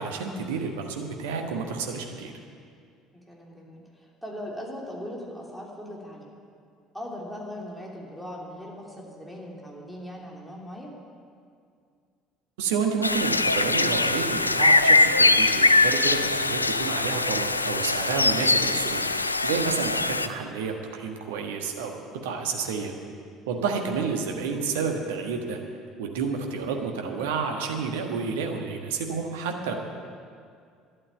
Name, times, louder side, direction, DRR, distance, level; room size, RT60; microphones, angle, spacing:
voice 1, 0.0-2.3 12.6-19.1 19.4-22.9 23.5-25.6 26.0-29.7, right 5 dB, 65° right, 3 dB, 1.4 m, -30 dB
voice 2, 3.3-6.3 6.9-10.9 23.5-23.6, equal, ahead, -3 dB, 3.1 m, -39 dB
sound 1, 13.0-20.3, left 2 dB, 85° left, 0.3 m, -22 dB
11.5 x 8.5 x 9.2 m, 2.3 s
figure-of-eight pair, 60°, 0 cm